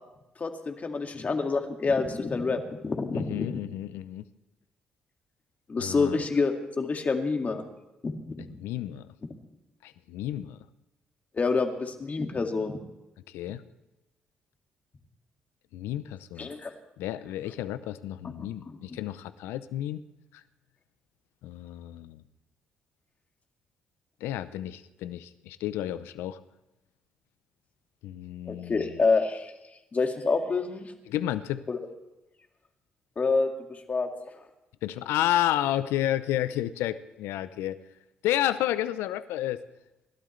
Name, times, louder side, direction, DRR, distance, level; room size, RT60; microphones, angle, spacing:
voice 1, 0.4-3.5 5.7-7.6 8.0-8.4 11.3-12.8 16.4-16.7 18.7-18.8 28.5-29.5 29.9-30.9 31.7-31.8 33.2-33.5 33.9-34.1, left 4 dB, 40° left, 4 dB, 2.1 m, -27 dB
voice 2, 3.1-4.2 5.8-6.2 8.4-9.1 9.8-10.6 13.3-13.6 15.7-16.5 17.0-20.0 21.4-22.2 24.2-26.4 28.0-29.0 31.1-31.6 34.8-37.8 38.2-39.6, left 13 dB, 80° left, 14 dB, 0.7 m, -31 dB
28.5 x 12.5 x 3.3 m, 0.98 s
hypercardioid pair, 55°, 4 cm